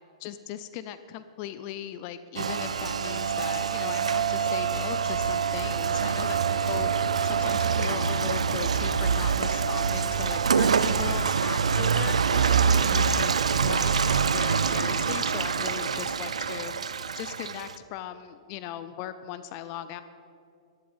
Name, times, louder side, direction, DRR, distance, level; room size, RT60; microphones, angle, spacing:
voice 1, 0.2-6.9 7.2-13.3 13.6-16.7 17.2-20.0, left 11 dB, 40° left, 12 dB, 0.5 m, -38 dB
Rain, 2.4-17.8, right 6 dB, 90° right, 0.4 m, -25 dB
11.0 x 10.5 x 5.5 m, 2.5 s
hypercardioid pair, 135°, 3 cm